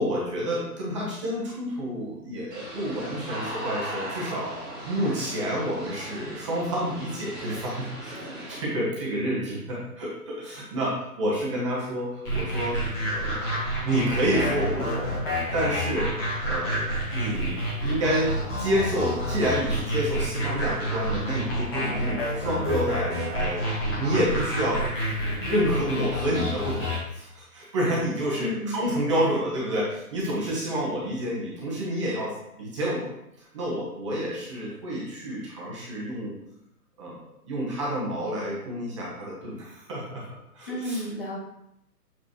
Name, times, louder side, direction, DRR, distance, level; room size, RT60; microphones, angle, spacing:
voice 1, 0.0-13.5 13.8-18.3 18.6-23.6 24.0-24.8 25.5-36.4 37.0-37.2 37.5-40.3 40.5-41.0, equal, 20° right, -6 dB, 1.1 m, -29 dB
sound 1, 2.5-8.6, right 1 dB, 5° right, 0.9 m, -38 dB
sound 2, 12.2-27.0, equal, 15° left, 1.2 m, -28 dB
voice 2, 28.4-28.7 40.7-41.4, left 1 dB, 35° left, -2 dB, 1.1 m, -31 dB
7.2 x 4.9 x 3.1 m, 0.81 s
hypercardioid pair, 170°, 47 cm